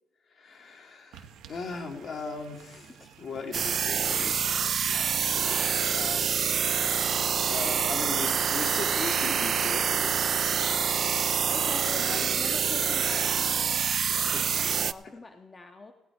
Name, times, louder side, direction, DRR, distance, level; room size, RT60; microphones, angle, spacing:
voice 1, 0.3-6.4 7.5-11.2 11.4-11.5 11.9-13.0 14.1-14.7, left 4 dB, 65° left, 2 dB, 1.8 m, -39 dB
sound 1, 1.1-14.7, right 8 dB, 90° right, 0.9 m, -53 dB
voice 2, 3.0-3.3 7.5-8.4 11.5-13.8 14.1-15.9, left 3 dB, 30° left, 5 dB, 0.8 m, -43 dB
sound 2, 3.5-14.9, right 7 dB, 55° right, 0.3 m, -26 dB
16.5 x 8.7 x 4.3 m, 1.1 s
cardioid pair, 90°, 0 cm